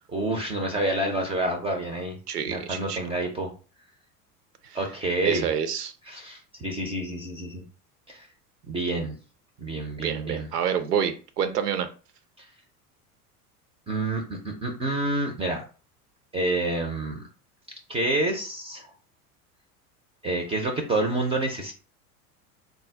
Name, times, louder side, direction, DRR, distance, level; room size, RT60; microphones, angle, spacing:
voice 1, 0.1-2.2 2.5-3.5 4.7-5.5 6.1-7.6 8.1-8.3 8.7-9.2 9.6-10.5 13.9-15.6 16.3-17.2 17.9-18.9 20.2-21.7, right 2 dB, 15° right, 2 dB, 0.4 m, -28 dB
voice 2, 2.3-3.0 4.6-4.8 5.2-5.9 10.0-11.9, right 8 dB, 80° right, 9 dB, 0.6 m, -28 dB
3.6 x 2.2 x 3.2 m, 0.36 s
figure-of-eight pair, 75°, 46 cm